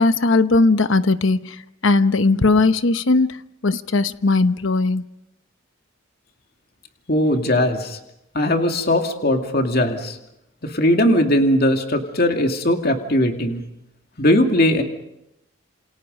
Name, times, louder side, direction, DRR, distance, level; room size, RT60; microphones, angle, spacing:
voice 1, 0.0-3.4 3.6-5.0, left 3 dB, 70° left, 12 dB, 0.9 m, -18 dB
voice 2, 7.1-8.0 8.3-10.2 10.6-13.6 14.2-14.8, left 1 dB, 50° left, 4 dB, 2.4 m, -19 dB
28.0 x 28.0 x 5.4 m, 0.87 s
head